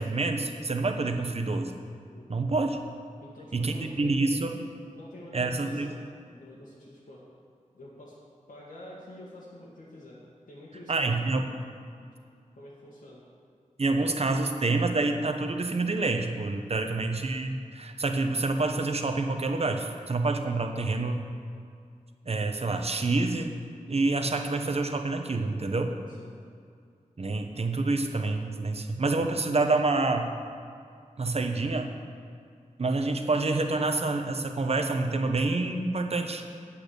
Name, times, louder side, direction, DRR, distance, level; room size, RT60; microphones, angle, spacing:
voice 1, 0.0-1.7 2.3-2.8 3.5-4.6 5.3-5.9 10.9-11.5 13.8-21.2 22.3-23.6 23.9-25.9 27.2-30.3 31.2-31.9 32.8-36.4, right 3 dB, 50° right, 5 dB, 0.9 m, -27 dB
voice 2, 3.2-4.5 4.9-6.0 6.3-7.2 7.7-8.2 8.5-10.2 10.5-11.4 12.0-12.1 12.5-13.2 26.1-26.3, left 1 dB, 90° left, -7 dB, 1.8 m, -48 dB
8.8 x 8.5 x 6.6 m, 2.3 s
wide cardioid pair, 90°, 14 cm